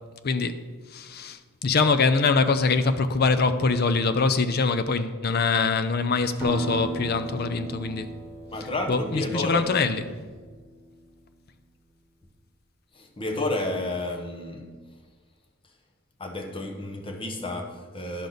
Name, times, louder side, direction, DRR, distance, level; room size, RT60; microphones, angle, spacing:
voice 1, 0.2-0.6 0.9-8.1 8.9-10.0, left 4 dB, 45° left, 0.5 m, -23 dB
Acoustic guitar, 6.4-11.2, right 3 dB, 10° right, 1.0 m, -37 dB
voice 2, 8.5-9.7 12.9-14.8 16.2-18.3, left 1 dB, 25° left, 0.9 m, -31 dB
10.5 x 6.7 x 3.9 m
head